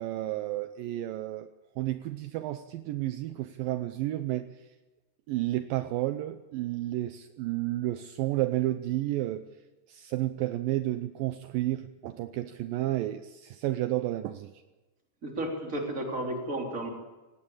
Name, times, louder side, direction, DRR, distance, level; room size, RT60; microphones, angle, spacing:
voice 1, 0.0-1.5 1.8-4.6 5.3-9.5 9.9-14.5, right 15 dB, 80° right, 10 dB, 2.0 m, -31 dB
voice 2, 15.2-16.9, right 1 dB, 20° right, 1 dB, 3.4 m, -33 dB
18.0 x 17.5 x 8.8 m, 1.1 s
omnidirectional pair, 4.9 m